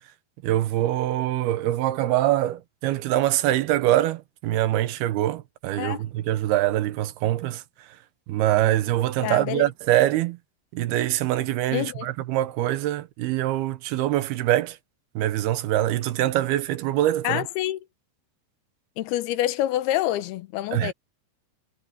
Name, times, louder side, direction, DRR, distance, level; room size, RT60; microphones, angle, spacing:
voice 1, 0.4-7.6 8.3-10.4 10.7-14.8 15.2-17.4 20.7-20.9, right 14 dB, 85° right, 3.0 m, -24 dB
voice 2, 9.2-9.7 11.7-12.1 17.2-17.8 19.0-20.9, left 14 dB, 85° left, 2.9 m, -27 dB
omnidirectional pair, 4.5 m